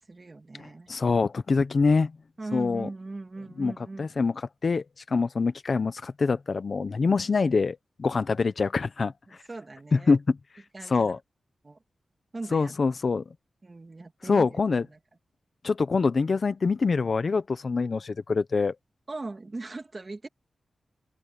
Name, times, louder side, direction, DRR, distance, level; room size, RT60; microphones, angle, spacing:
voice 1, 0.1-0.9 2.4-4.1 9.3-10.2 10.7-11.2 11.6-11.8 12.3-12.8 13.6-15.0 19.1-20.3, right 2 dB, 30° right, 2.0 m, -39 dB
voice 2, 0.9-2.1 2.5-2.9 3.6-3.7 4.0-4.3 4.6-9.1 9.9-10.2 10.9-11.2 12.5-13.2 14.3-14.8 15.6-18.7, left 4 dB, 45° left, 0.8 m, -25 dB
open air
wide cardioid pair, 150°, 0 cm